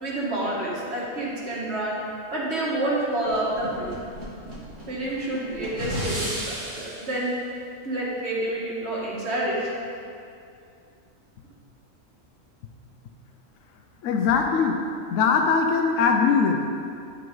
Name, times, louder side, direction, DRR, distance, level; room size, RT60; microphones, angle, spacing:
voice 1, 0.0-2.0 2.3-3.9 4.9-6.5 6.7-7.3 7.8-9.7, right 1 dB, 55° right, -6 dB, 2.1 m, -28 dB
sound 1, 3.3-7.1, right 1 dB, 70° right, 2.1 m, -34 dB
voice 2, 14.0-14.8 15.1-16.7, left 5 dB, 75° left, 3 dB, 1.0 m, -21 dB
10.5 x 6.2 x 3.9 m, 2.4 s
omnidirectional pair, 1.3 m